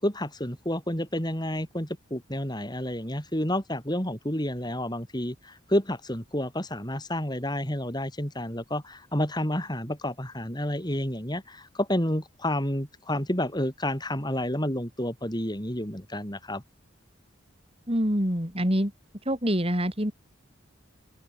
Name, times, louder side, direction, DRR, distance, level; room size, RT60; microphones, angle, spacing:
voice 1, 0.0-16.6, left 1 dB, 20° left, 6.1 m, -30 dB
voice 2, 17.9-18.9 19.3-20.1, equal, 25° right, 5.6 m, -25 dB
head